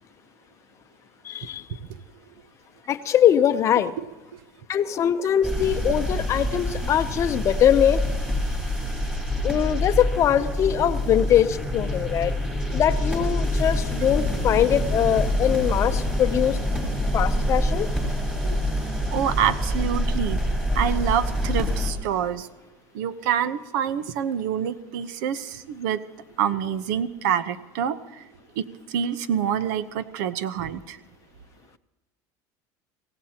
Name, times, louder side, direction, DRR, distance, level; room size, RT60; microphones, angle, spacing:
voice 1, 1.2-1.8 2.9-3.9 4.7-8.0 9.4-12.3 12.7-16.6 17.1-17.9, left 10 dB, 30° left, 11 dB, 0.7 m, -22 dB
sound 1, 5.4-21.9, left 1 dB, 10° right, 4.0 m, -26 dB
voice 2, 19.1-20.4 20.7-22.5 22.9-26.0 26.4-28.2 28.6-31.0, right 8 dB, 80° right, 13 dB, 0.9 m, -26 dB
24.5 x 17.0 x 2.9 m, 1.2 s
cardioid pair, 160°, 9 cm